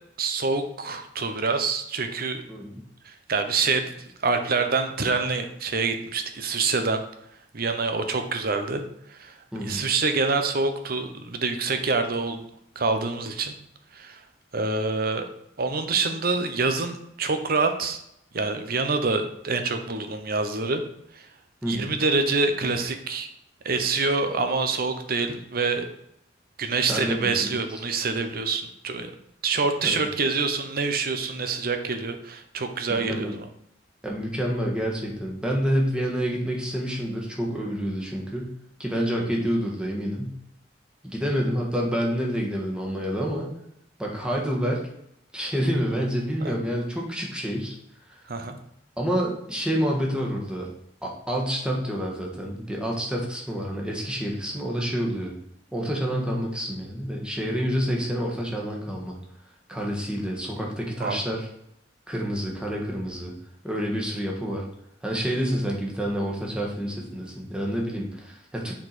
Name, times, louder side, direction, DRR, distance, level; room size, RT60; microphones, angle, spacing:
voice 1, 0.2-2.4 3.0-3.9 4.2-7.0 7.5-8.8 9.1-9.3 9.6-12.4 12.8-13.6 13.9-14.2 14.5-15.2 15.6-18.0 18.3-20.8 21.1-21.3 21.6-23.3 23.6-25.9 26.6-29.1 29.4-33.3 46.4-46.5 48.3-48.6 61.0-61.2, right 4 dB, 55° right, 7 dB, 0.9 m, -26 dB
voice 2, 2.5-2.8 9.5-9.9 21.6-21.9 26.9-27.5 29.8-30.1 32.9-33.3 34.0-38.5 38.8-40.3 41.0-43.5 44.0-44.8 45.3-47.8 49.0-50.7 51.0-55.3 55.7-59.2 59.7-61.5 62.1-63.3 63.6-64.6 65.0-68.7, equal, 5° right, -2 dB, 1.5 m, -28 dB
7.4 x 4.6 x 4.2 m, 0.74 s
head